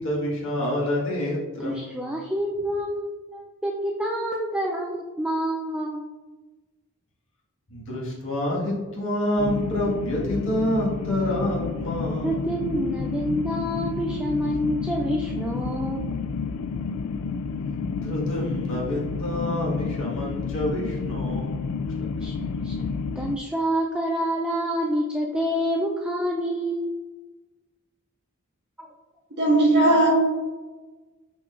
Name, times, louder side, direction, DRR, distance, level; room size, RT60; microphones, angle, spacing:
voice 1, 0.0-2.0 7.7-12.4 17.9-21.8, left 1 dB, 65° left, -4 dB, 1.7 m, -27 dB
voice 2, 1.6-6.1 12.2-16.1 22.2-22.9 23.2-26.9 28.8-28.9, equal, 5° right, -2 dB, 0.4 m, -27 dB
sound 1, 9.4-23.4, left 5 dB, 80° left, 0.3 m, -30 dB
voice 3, 29.4-30.1, right 2 dB, 55° right, -2 dB, 1.5 m, -17 dB
6.3 x 6.0 x 2.5 m, 1.3 s
head